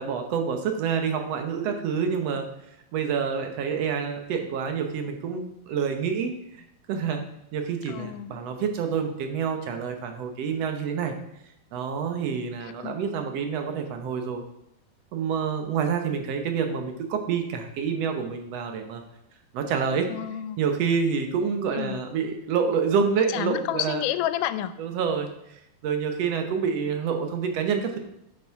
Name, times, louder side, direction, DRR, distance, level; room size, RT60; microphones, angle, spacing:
voice 1, 0.0-2.5 2.9-6.3 6.9-7.2 7.5-11.1 11.7-14.4 15.1-19.0 19.5-20.1 20.6-24.0 24.8-28.0, right 6 dB, 65° right, 5 dB, 1.8 m, -27 dB
voice 2, 7.9-8.5 12.6-13.1 20.1-20.6 21.7-22.0 23.3-24.8, left 12 dB, 85° left, 13 dB, 2.1 m, -30 dB
9.7 x 6.0 x 4.6 m, 0.79 s
omnidirectional pair, 3.7 m